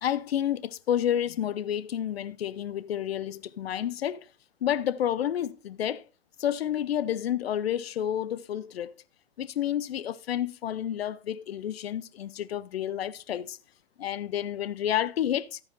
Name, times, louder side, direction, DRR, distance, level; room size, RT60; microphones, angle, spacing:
voice 1, 0.0-4.3 4.6-6.1 6.4-8.9 9.4-13.6 14.0-15.6, left 10 dB, 80° left, 0.6 m, -30 dB
13.5 x 9.6 x 2.6 m
hypercardioid pair, 115°, 30 cm